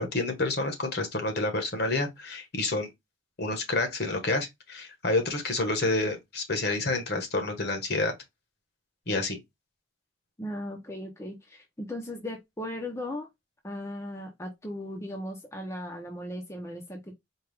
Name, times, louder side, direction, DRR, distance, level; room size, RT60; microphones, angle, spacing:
voice 1, 0.0-2.9 3.4-8.1 9.1-9.4, left 2 dB, 55° left, 1.2 m, -29 dB
voice 2, 10.4-13.3 13.6-17.1, left 1 dB, 15° left, 0.6 m, -37 dB
4.5 x 2.3 x 3.3 m
head